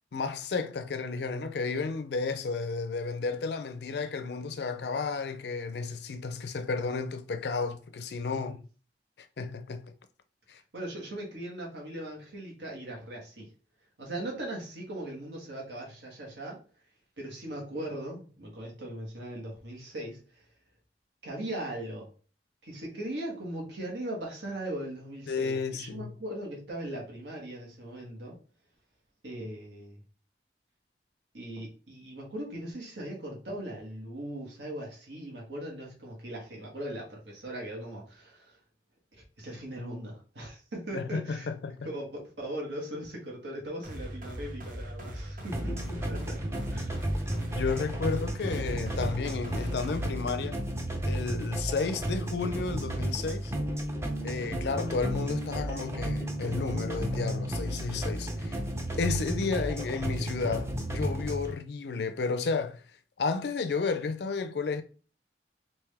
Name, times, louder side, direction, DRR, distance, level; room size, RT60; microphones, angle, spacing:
voice 1, 0.1-8.6 9.4-9.9 10.5-10.6 25.3-26.1 40.9-41.9 47.5-50.6 51.0-53.5 54.2-58.6 59.0-62.8 63.2-64.8, left 4 dB, 65° left, 0.4 m, -32 dB
voice 2, 10.7-13.5 14.0-16.6 17.2-20.4 21.2-22.1 22.6-28.4 29.2-30.0 31.3-38.6 39.1-41.5 41.8-46.4 46.7-47.0, right 1 dB, 85° right, 1.4 m, -39 dB
sound 1, 43.8-50.0, equal, 50° right, 0.8 m, -40 dB
sound 2, 45.5-61.5, right 1 dB, 15° right, 0.5 m, -33 dB
3.5 x 2.6 x 3.3 m
head